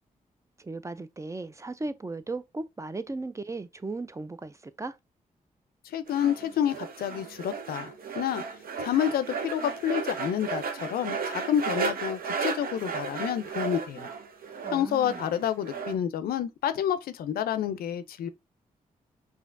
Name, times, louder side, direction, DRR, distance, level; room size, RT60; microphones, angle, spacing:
voice 1, 0.6-5.0 14.6-15.2, right 3 dB, 20° right, 0.4 m, -36 dB
voice 2, 5.9-8.4 8.8-14.1 14.7-18.3, left 10 dB, 80° left, 0.4 m, -29 dB
sound 1, 6.1-15.9, right 5 dB, 70° right, 0.7 m, -34 dB
5.0 x 2.7 x 2.5 m
supercardioid pair, 45°, 15 cm